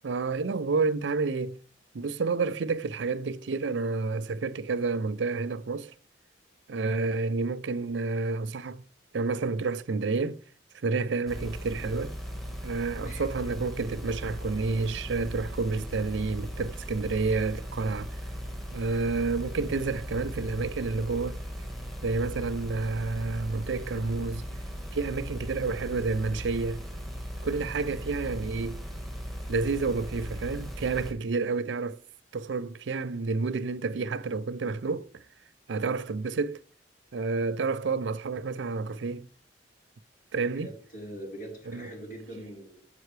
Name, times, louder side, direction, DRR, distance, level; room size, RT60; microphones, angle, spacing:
voice 1, 0.0-1.6 1.9-5.9 6.7-8.8 9.1-10.4 10.8-12.1 12.6-18.1 18.7-21.4 22.0-24.4 24.9-26.8 27.4-28.8 29.5-32.0 32.3-35.2 35.7-36.6 37.1-39.3 40.3-40.7 41.7-41.9, right 4 dB, 75° right, 0.5 m, -29 dB
sound 1, 11.3-31.1, equal, ahead, 1.5 m, -38 dB
voice 2, 12.9-13.3 40.6-42.8, right 1 dB, 55° left, 4.2 m, -42 dB
9.1 x 7.6 x 3.3 m
head